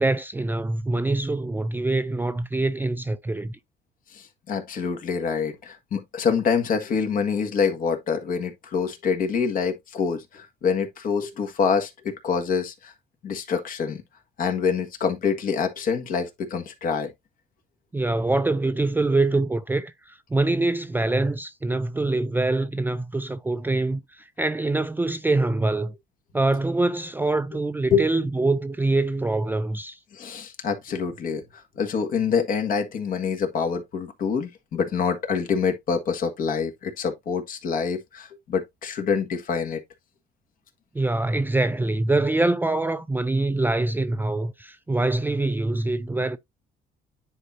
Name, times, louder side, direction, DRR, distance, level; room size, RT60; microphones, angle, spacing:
voice 1, 0.0-3.6 17.9-25.9 26.3-30.0 40.9-46.4, right 2 dB, 10° right, 0.4 m, -24 dB
voice 2, 4.1-12.9 13.2-14.0 14.4-17.1 27.9-28.1 30.1-31.4 31.8-39.8, left 6 dB, 55° left, 1.7 m, -26 dB
9.8 x 4.4 x 2.7 m
cardioid pair, 110°, 17 cm